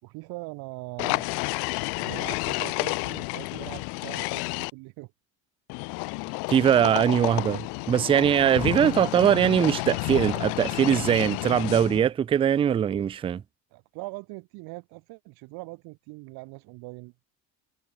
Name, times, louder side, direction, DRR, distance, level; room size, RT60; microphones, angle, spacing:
voice 1, 0.0-1.3 2.0-5.1 8.6-8.9 13.7-17.3, right 25 dB, 80° right, 2.5 m, -41 dB
sound 1, 1.0-4.7 5.7-12.1, left 32 dB, 85° left, 0.5 m, -30 dB
voice 2, 6.5-13.4, right 9 dB, 15° right, 0.3 m, -22 dB
cardioid pair, 175°, 37 cm